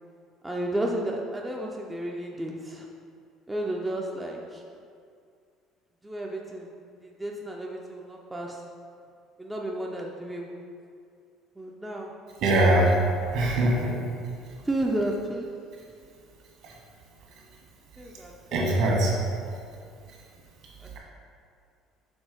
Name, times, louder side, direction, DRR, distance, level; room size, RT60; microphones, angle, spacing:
voice 1, 0.4-2.9 3.5-4.6 6.0-6.7 7.0-8.6 9.4-10.6 11.6-12.1 14.6-15.5 18.0-18.7 20.8-21.0, right 1 dB, 10° right, -1 dB, 0.4 m, -32 dB
voice 2, 12.4-12.9 13.3-14.0 16.6-16.7 18.5-19.1, right 1 dB, 60° right, -2 dB, 1.4 m, -22 dB
6.2 x 3.4 x 5.2 m, 2.3 s
cardioid pair, 150°, 0 cm